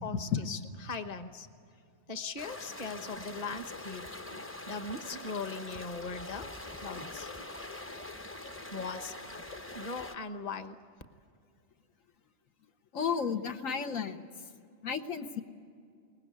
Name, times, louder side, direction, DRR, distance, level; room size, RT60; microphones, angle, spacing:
voice 1, 0.0-1.5 2.1-4.0 4.7-6.5 6.8-7.3 8.4-9.1 9.7-10.8, left 4 dB, 35° left, 9 dB, 1.1 m, -39 dB
sound 1, 2.4-10.2, left 2 dB, 15° left, 0.7 m, -43 dB
voice 2, 12.9-14.2 14.8-15.4, left 6 dB, 85° left, 6 dB, 1.6 m, -32 dB
23.0 x 19.5 x 9.5 m, 2.3 s
omnidirectional pair, 1.3 m